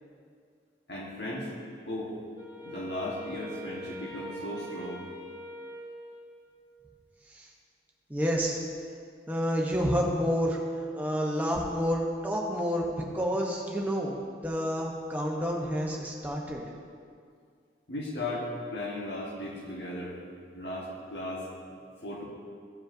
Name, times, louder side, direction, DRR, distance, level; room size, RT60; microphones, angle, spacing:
voice 1, 0.9-1.5 1.9-2.1 2.6-5.0 17.9-20.1 20.5-21.5 22.0-22.2, left 1 dB, 85° left, -2 dB, 1.2 m, -36 dB
Wind instrument woodwind instrument, 2.3-6.7, right 1 dB, 25° left, 0.8 m, -43 dB
voice 2, 8.1-8.6 9.3-10.6 10.9-16.6, equal, 10° right, -2 dB, 0.8 m, -29 dB
13.5 x 5.1 x 2.6 m, 2.2 s
head